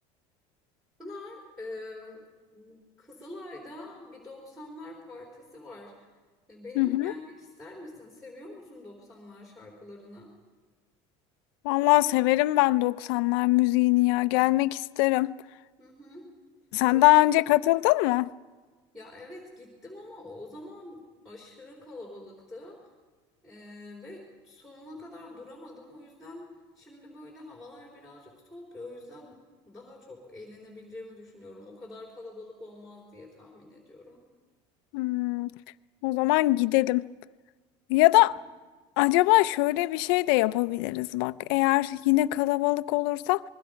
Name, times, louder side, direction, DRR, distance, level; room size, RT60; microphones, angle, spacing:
voice 1, 1.0-2.2 2.5-6.1 6.5-10.3 15.8-16.3 16.9-17.2 18.9-22.9 23.4-29.4 29.7-34.2, left 2 dB, ahead, 3.8 m, -45 dB
voice 2, 6.8-7.1 11.6-15.3 16.7-18.3 34.9-35.5 36.0-37.1 37.9-38.3 39.0-43.4, left 19 dB, 80° left, 0.6 m, -23 dB
27.5 x 21.5 x 5.2 m
cardioid pair, 165°, 12 cm